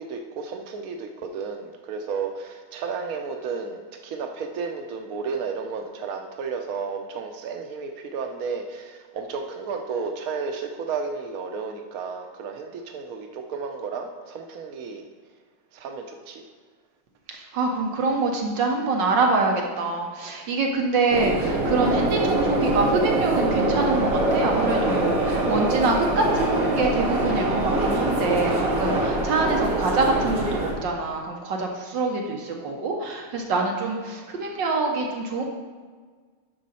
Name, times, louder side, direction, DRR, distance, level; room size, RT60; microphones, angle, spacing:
voice 1, 0.0-15.1 15.7-16.4, right 5 dB, 80° right, 4 dB, 0.8 m, -32 dB
voice 2, 17.3-35.4, right 3 dB, 65° right, 1 dB, 1.5 m, -25 dB
sound 1, 21.1-30.7, right 2 dB, 45° right, 1.9 m, -24 dB
10.5 x 6.2 x 4.2 m, 1.5 s
omnidirectional pair, 2.3 m